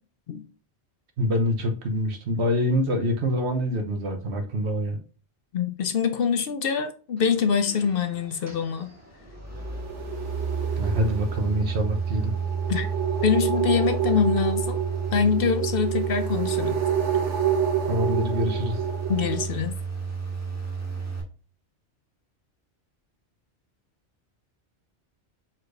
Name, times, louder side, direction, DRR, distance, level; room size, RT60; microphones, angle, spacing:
voice 1, 1.2-5.0 10.8-12.3 17.9-18.8, equal, 70° right, 5 dB, 1.2 m, -25 dB
voice 2, 5.5-8.9 12.7-12.9 13.2-14.8 15.1-16.8 19.1-19.8, left 6 dB, 60° left, 8 dB, 0.7 m, -24 dB
sound 1, 7.2-21.2, right 6 dB, 15° right, 1.4 m, -32 dB
sound 2, 9.5-19.4, right 8 dB, 85° right, 1.3 m, -29 dB
4.7 x 4.4 x 2.5 m, 0.39 s
omnidirectional pair, 1.2 m